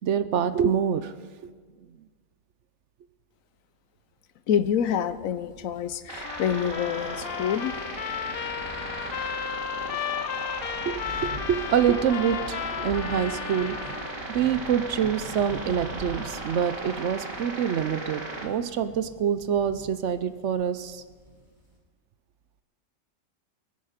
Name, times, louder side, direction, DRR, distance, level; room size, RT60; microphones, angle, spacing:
voice 1, 0.0-1.1 1.4-1.5 10.9-13.8 14.3-21.0, right 8 dB, 65° right, 12 dB, 0.9 m, -26 dB
voice 2, 4.5-7.8, left 8 dB, 80° left, 13 dB, 1.1 m, -27 dB
sound 1, 4.5-21.8, equal, 15° right, 2.7 m, -45 dB
sound 2, 6.1-18.4, right 2 dB, 90° right, 2.3 m, -37 dB
Trumpet, 6.2-14.2, left 9 dB, 60° left, 0.7 m, -34 dB
23.0 x 9.6 x 5.0 m, 1.5 s
omnidirectional pair, 1.4 m